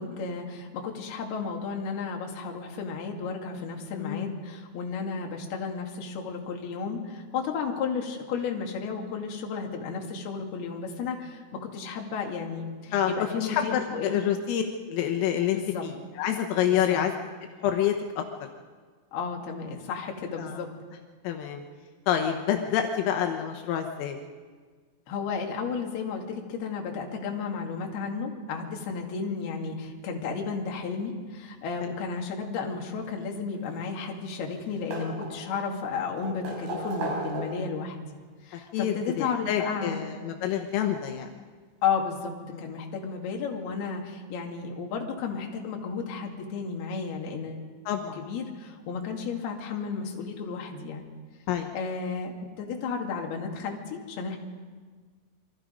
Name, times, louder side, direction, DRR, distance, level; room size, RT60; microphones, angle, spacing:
voice 1, 0.0-14.3 15.5-15.8 16.7-17.0 19.1-20.7 25.1-38.2 38.4-40.0 41.8-42.3 42.6-47.6 48.0-51.1 51.7-54.4, left 5 dB, 55° left, 1 dB, 4.0 m, -33 dB
voice 2, 3.9-4.3 12.9-13.1 13.5-14.6 14.9-17.1 17.6-18.2 20.4-20.6 21.3-21.6 22.1-24.2 38.7-41.3 47.9-48.2 51.5-51.8, left 10 dB, 80° left, 4 dB, 3.8 m, -27 dB
sound 1, 33.6-34.3 34.5-35.7 36.2-37.8 39.0-39.1 40.7-40.8 41.1-41.2, right 2 dB, 55° right, 6.4 m, -35 dB
28.0 x 24.0 x 5.2 m, 1.5 s
omnidirectional pair, 5.9 m